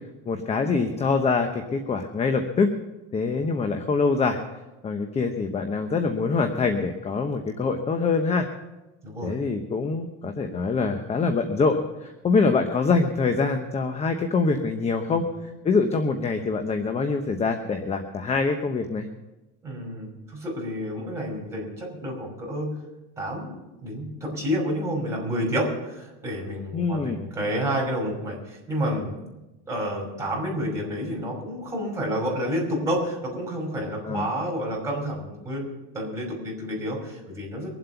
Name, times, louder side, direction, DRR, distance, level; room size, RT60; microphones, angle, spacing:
voice 1, 0.3-2.7 3.1-4.4 4.8-8.5 9.2-19.1 26.7-27.2 34.0-34.2, left 4 dB, 20° left, 7 dB, 1.0 m, -24 dB
voice 2, 9.0-9.3 19.6-22.8 23.2-29.2 29.7-35.7 35.9-37.7, equal, 10° right, -2 dB, 5.6 m, -29 dB
23.5 x 7.9 x 5.8 m, 1.0 s
cardioid pair, 140°, 31 cm